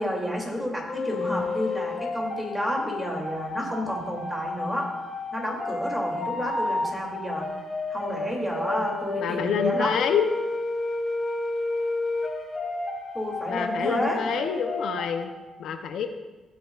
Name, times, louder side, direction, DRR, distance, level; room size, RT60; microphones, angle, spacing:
voice 1, 0.0-4.9 5.3-7.5 7.9-9.9 13.1-14.2, equal, 5° right, -1 dB, 2.6 m, -30 dB
sound 1, 0.9-15.2, left 2 dB, 35° left, 1.4 m, -31 dB
voice 2, 9.2-10.3 13.5-15.3 15.6-16.1, left 8 dB, 75° left, 7 dB, 0.6 m, -27 dB
15.5 x 7.9 x 2.4 m, 1.2 s
cardioid pair, 90°, 0 cm